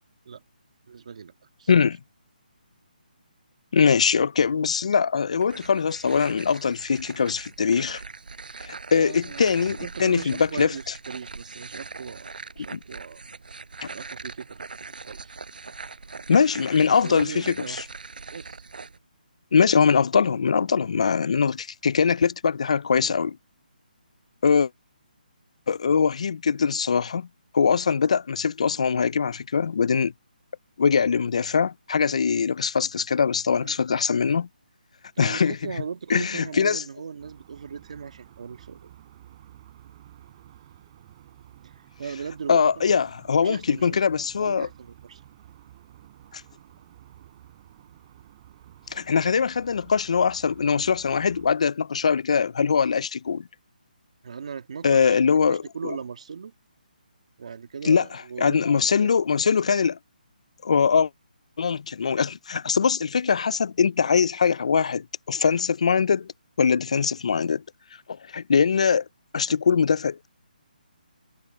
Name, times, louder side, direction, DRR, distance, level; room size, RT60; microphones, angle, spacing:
voice 1, 0.9-1.3 1.6-1.7 8.9-12.3 12.6-13.2 13.9-15.4 17.0-17.8 18.3-18.6 33.6-33.8 35.2-38.9 41.6-42.9 43.4-44.0 44.4-45.2 54.2-56.5 57.4-59.1, right 6 dB, 45° right, 1.7 m, -38 dB
voice 2, 3.7-8.0 8.6-10.7 12.7-12.8 16.3-17.5 19.5-23.4 24.4-24.7 25.7-27.3 27.5-30.1 30.8-34.5 35.2-35.6 36.1-36.8 42.5-44.7 46.3-46.4 48.9-53.4 54.8-56.0 57.8-58.0 58.4-60.0 60.6-61.1 61.6-66.3 66.6-67.6 68.3-69.0 69.3-70.3, left 6 dB, 45° left, 0.4 m, -22 dB
sound 1, 5.3-19.0, right 4 dB, 70° right, 6.4 m, -41 dB
sound 2, 37.2-51.6, right 12 dB, 25° right, 7.7 m, -51 dB
hypercardioid pair, 175°, 5 cm